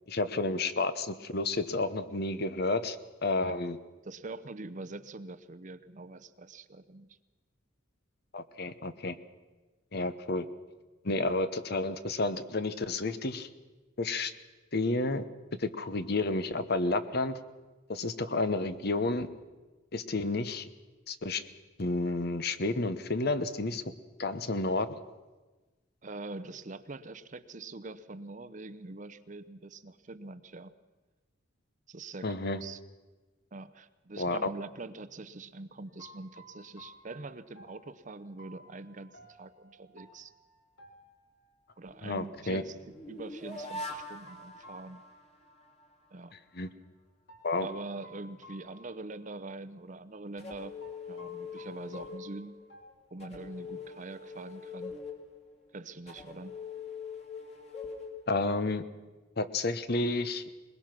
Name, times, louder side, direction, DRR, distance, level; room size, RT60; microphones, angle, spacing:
voice 1, 0.1-3.0 3.2-3.8 8.3-9.2 9.9-10.5 11.0-13.5 14.0-14.3 14.7-15.2 15.6-17.4 17.9-19.3 19.9-20.7 21.1-21.5 21.8-23.8 24.2-24.9 32.2-32.6 34.2-34.4 42.0-42.6 46.5-46.7 47.4-47.7 58.3-58.8 59.4-60.4, left 2 dB, 50° left, 12 dB, 1.0 m, -31 dB
voice 2, 4.0-7.2 26.0-30.7 31.9-32.8 33.5-40.3 41.8-45.0 46.1-46.3 47.6-50.8 51.1-52.6 53.1-55.0 55.7-56.6, right 2 dB, 40° right, 14 dB, 0.7 m, -44 dB
sound 1, 35.9-41.7 43.5-45.8 46.0-46.2 47.3-49.5 49.8-50.0 50.8-52.8, equal, 70° left, 3.6 m, -55 dB
sound 2, 41.9-45.8 50.4-52.7 53.2-58.8, left 4 dB, 30° left, 2.6 m, -44 dB
21.5 x 21.0 x 6.0 m, 1.2 s
head